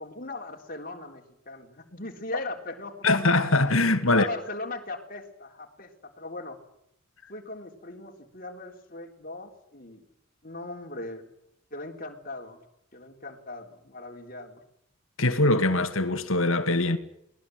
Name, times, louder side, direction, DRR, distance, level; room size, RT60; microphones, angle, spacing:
voice 1, 0.0-3.1 4.1-6.6 7.3-10.0 10.4-11.3 11.7-12.6 12.9-14.6, left 2 dB, 45° left, 3.7 m, -39 dB
voice 2, 3.0-4.3 15.2-17.0, left 2 dB, 80° left, 2.3 m, -22 dB
23.0 x 19.5 x 7.9 m
head